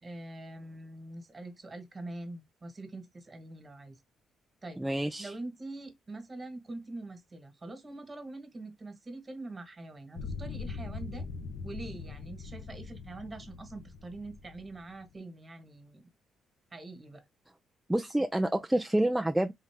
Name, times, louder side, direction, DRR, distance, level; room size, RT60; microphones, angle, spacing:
voice 1, 0.0-3.9 4.6-4.8 5.2-11.2 11.6-16.0 16.7-17.3, right 2 dB, 30° right, 1.5 m, -44 dB
voice 2, 4.8-5.3 17.9-19.5, right 1 dB, 10° right, 0.4 m, -28 dB
sound 1, 10.2-15.1, left 4 dB, 75° left, 0.7 m, -41 dB
3.7 x 2.8 x 3.5 m
cardioid pair, 90°, 0 cm